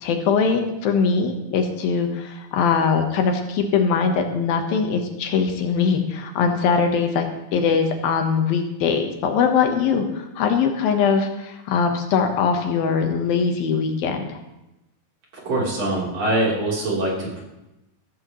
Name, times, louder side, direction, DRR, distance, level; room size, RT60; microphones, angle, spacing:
voice 1, 0.0-14.4, left 5 dB, 80° left, 5 dB, 3.0 m, -21 dB
voice 2, 15.5-17.4, right 1 dB, 45° right, -4 dB, 4.5 m, -23 dB
15.0 x 15.0 x 3.1 m, 0.93 s
omnidirectional pair, 4.2 m